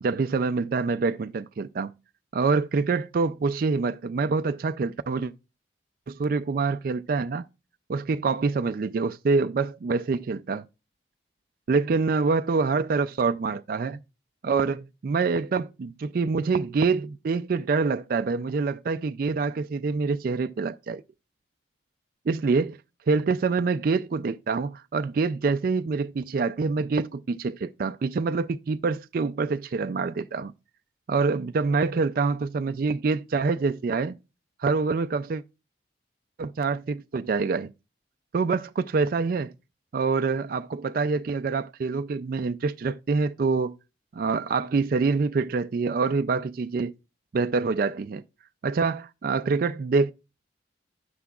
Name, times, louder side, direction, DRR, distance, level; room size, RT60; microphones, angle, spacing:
voice 1, 0.0-1.9 2.3-5.3 6.1-7.5 7.9-10.7 11.7-14.0 14.4-21.0 22.3-22.8 23.1-30.5 31.1-34.2 34.6-35.4 36.4-37.7 38.3-39.5 39.9-43.8 44.1-46.9 47.3-48.2 48.6-50.1, right 4 dB, 50° right, 0.3 m, -26 dB
11.5 x 9.5 x 2.4 m
head